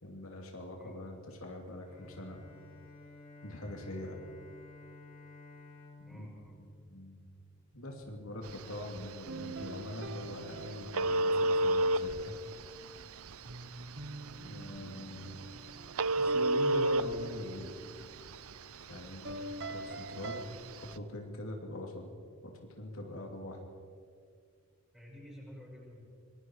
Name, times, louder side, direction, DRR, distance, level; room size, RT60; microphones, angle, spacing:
voice 1, 0.0-2.4 3.4-4.2 6.1-6.3 6.6-7.2 7.7-12.3 14.4-15.6 16.2-17.7 18.9-20.4 20.9-22.1 22.4-23.6, left 1 dB, 75° left, 1 dB, 2.9 m, -43 dB
Bowed string instrument, 1.9-7.8, left 2 dB, 40° left, 5.7 m, -54 dB
voice 2, 6.1-6.6 14.3-14.5 24.9-26.0, equal, 5° right, -5 dB, 6.8 m, -51 dB
Telephone, 8.5-21.0, right 1 dB, 85° right, 0.7 m, -34 dB
sound 1, 9.3-12.1 13.5-18.0 19.2-20.5, right 1 dB, 55° right, 1.3 m, -45 dB
25.5 x 21.5 x 4.8 m, 2.1 s
head